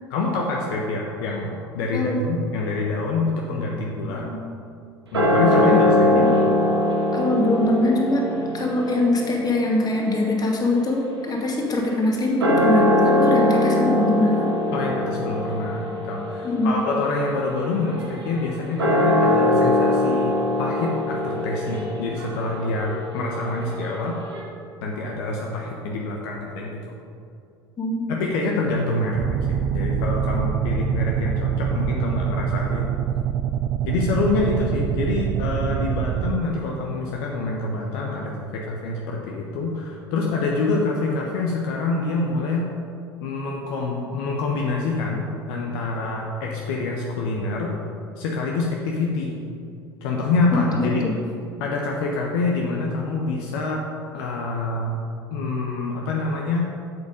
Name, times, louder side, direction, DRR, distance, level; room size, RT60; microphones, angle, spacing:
voice 1, 0.1-4.3 5.1-6.3 14.7-24.2 24.8-26.9 28.1-32.9 33.8-42.7 43.2-47.8 48.2-49.4 50.0-51.0 51.6-53.8 54.1-54.9 55.3-56.7, left 3 dB, 65° left, -1 dB, 1.1 m, -26 dB
sound 1, 5.1-11.8 12.3-24.4, left 1 dB, 85° right, 1.5 m, -23 dB
voice 2, 7.1-8.2 8.5-14.5 16.4-16.8 27.8-28.0 50.7-51.1, left 1 dB, 30° left, 0 dB, 2.0 m, -23 dB
sound 2, 29.2-36.4, right 9 dB, 45° right, 0.4 m, -25 dB
8.1 x 7.4 x 5.1 m, 2.5 s
figure-of-eight pair, 70°, 13 cm